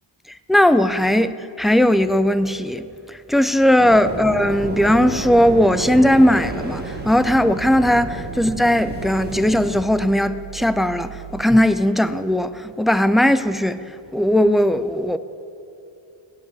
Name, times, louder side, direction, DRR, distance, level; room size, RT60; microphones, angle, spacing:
voice 1, 0.5-13.8 14.1-15.2, left 1 dB, ahead, 0.3 m, -18 dB
sound 1, 3.8-9.8, right 2 dB, 20° right, 1.9 m, -31 dB
sound 2, 4.6-11.5, right 14 dB, 65° right, 1.3 m, -38 dB
15.0 x 10.0 x 8.7 m
wide cardioid pair, 135°, 50 cm